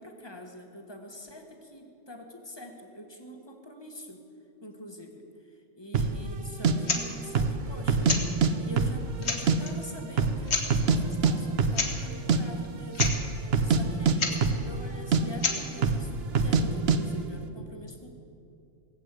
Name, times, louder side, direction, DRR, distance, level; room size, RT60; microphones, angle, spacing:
voice 1, 0.0-4.2 4.6-5.2 5.7-8.2 8.6-13.2 13.6-18.1, left 1 dB, 20° left, 3 dB, 1.4 m, -44 dB
sound 1, 5.9-6.2 6.6-6.7 7.3-7.6 7.9-8.5 8.8-9.6 9.8-9.9 10.2-11.0 11.2-11.3 11.6-11.8 12.1-12.4 12.9-13.2 13.5-14.9 15.1-15.2 15.8-16.1 16.4-16.6 16.9-17.0, right 5 dB, 55° right, 1.0 m, -23 dB
sound 2, 6.8-7.1 8.0-8.3 8.9-9.0 9.2-9.7 10.5-10.7 11.7-11.9 12.2-12.3 12.6-12.7 12.9-13.2 14.2-14.4 15.4-15.6, left 4 dB, 60° left, 1.7 m, -28 dB
18.5 x 8.2 x 8.2 m, 2.6 s
omnidirectional pair, 1.3 m